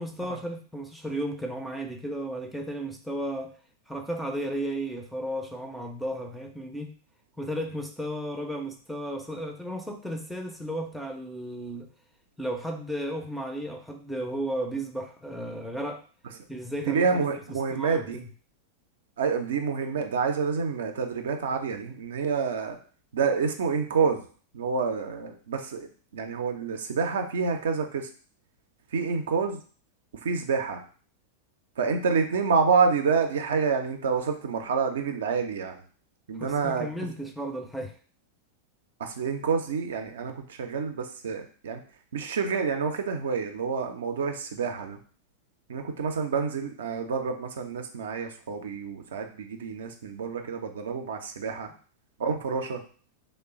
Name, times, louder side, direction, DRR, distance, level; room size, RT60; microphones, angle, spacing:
voice 1, 0.0-3.5 3.9-6.9 7.4-11.9 12.4-16.0 16.5-18.3 36.4-37.9, right 1 dB, ahead, 4 dB, 0.4 m, -34 dB
voice 2, 16.9-18.2 19.2-22.8 23.1-24.2 24.5-28.1 28.9-29.6 30.2-30.8 31.8-35.8 36.3-37.1 39.0-41.8 42.1-45.0 45.7-51.7 52.2-52.8, right 5 dB, 60° right, 5 dB, 0.4 m, -28 dB
3.0 x 2.1 x 3.6 m, 0.41 s
figure-of-eight pair, 90°, 0 cm